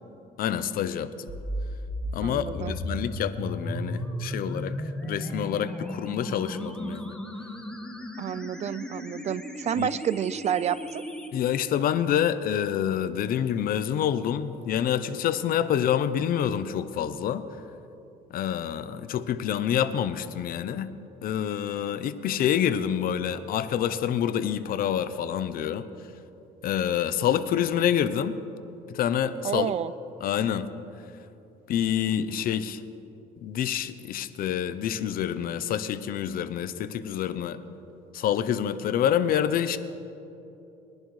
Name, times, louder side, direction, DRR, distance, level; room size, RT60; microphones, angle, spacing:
voice 1, 0.4-1.3 2.1-4.7 5.0-7.1 9.8-9.9 11.3-17.4 18.3-20.9 21.2-25.8 26.6-28.4 28.9-29.8 30.2-30.7 31.7-32.8 33.4-37.6 38.1-39.8, left 9 dB, 60° left, 13 dB, 0.6 m, -27 dB
sound 1, 1.3-11.3, equal, 5° left, 1.3 m, -35 dB
voice 2, 2.2-2.8 8.2-11.0 29.4-29.9, right 9 dB, 40° right, 17 dB, 0.4 m, -29 dB
20.5 x 10.5 x 3.2 m, 2.9 s
cardioid pair, 110°, 17 cm